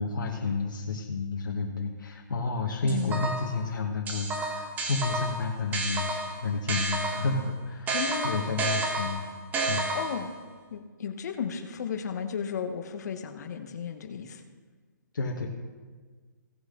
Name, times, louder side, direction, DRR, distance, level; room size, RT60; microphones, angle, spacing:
voice 1, 0.0-8.0 8.2-9.2 9.7-9.9 15.1-15.5, left 3 dB, 80° left, 0 dB, 1.4 m, -31 dB
voice 2, 2.8-3.3 7.9-8.4 9.9-10.3 10.7-14.4, left 7 dB, 60° left, 7 dB, 1.1 m, -34 dB
sound 1, 2.9-3.6 4.1-7.4 7.9-10.3, right 2 dB, 15° right, 1.5 m, -31 dB
17.0 x 6.4 x 3.8 m, 1.5 s
hypercardioid pair, 145°, 10 cm